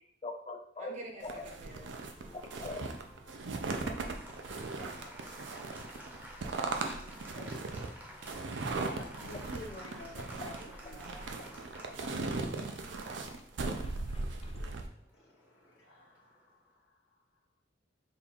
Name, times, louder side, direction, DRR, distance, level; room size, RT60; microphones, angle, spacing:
voice 1, 0.2-1.0 1.2-1.5 2.6-2.9 4.8-4.9 6.8-6.9 7.4-7.6 13.2-13.3 13.8-14.6, left 2 dB, 35° left, 5 dB, 0.4 m, -43 dB
voice 2, 0.8-1.9 3.8-7.1 10.3-10.4 10.9-12.0, right 1 dB, 40° right, 1 dB, 0.8 m, -53 dB
sound 1, 1.2-14.9, right 3 dB, 85° right, 0.5 m, -38 dB
Applause, 2.1-16.5, equal, 10° right, 0.6 m, -52 dB
voice 3, 8.8-11.2 11.9-12.3 15.1-17.1, left 2 dB, 90° left, -5 dB, 0.7 m, -50 dB
3.7 x 2.4 x 4.4 m, 0.62 s
head